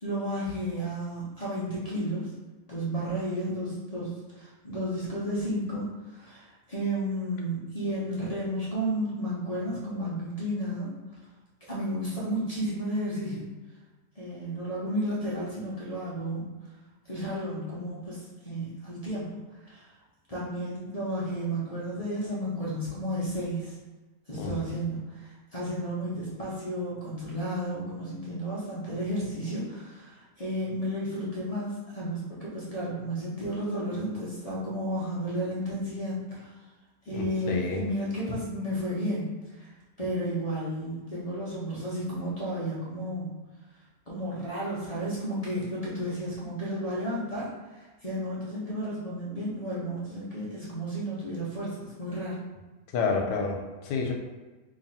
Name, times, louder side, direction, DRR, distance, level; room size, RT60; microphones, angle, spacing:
voice 1, 0.0-2.3 2.7-10.9 11.7-13.5 14.2-16.5 17.1-19.9 20.3-23.8 24.3-36.5 37.0-39.7 40.0-43.3 44.1-52.4, equal, 45° left, -7 dB, 0.4 m, -32 dB
voice 2, 37.1-37.8 52.9-54.1, left 4 dB, 90° left, 2 dB, 1.2 m, -30 dB
3.0 x 2.7 x 4.1 m, 1.2 s
omnidirectional pair, 1.8 m